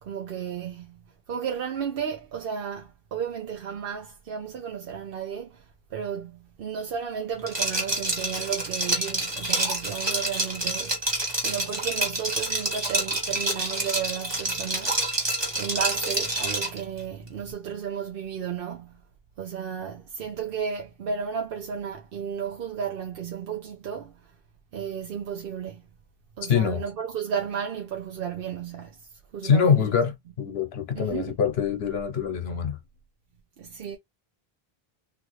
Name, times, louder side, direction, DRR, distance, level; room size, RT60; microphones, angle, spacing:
voice 1, 0.0-15.2 15.6-19.0 19.4-24.4 24.7-25.8 26.4-29.9 30.9-31.4 33.6-34.0, right 7 dB, 65° right, 0.8 m, -33 dB
Liquid, 7.5-16.8, right 1 dB, 25° right, 1.2 m, -28 dB
voice 2, 26.5-26.8 29.4-32.8, left 7 dB, 80° left, 1.0 m, -24 dB
3.3 x 2.5 x 3.1 m
omnidirectional pair, 1.0 m